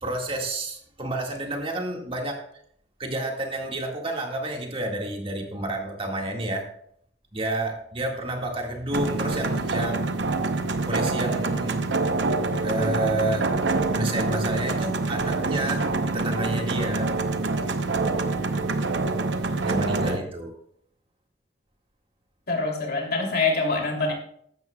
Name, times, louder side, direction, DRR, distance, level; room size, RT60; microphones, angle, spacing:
voice 1, 0.0-2.4 3.0-6.7 7.3-10.0 10.9-11.8 12.6-13.5 13.9-15.9 16.1-17.1 19.6-20.5, right 1 dB, 30° right, 1 dB, 1.9 m, -30 dB
sound 1, 8.9-20.2, right 3 dB, 90° right, 0.8 m, -26 dB
voice 2, 22.5-24.1, left 3 dB, 60° left, 1 dB, 3.0 m, -25 dB
15.0 x 12.0 x 2.3 m, 0.66 s
head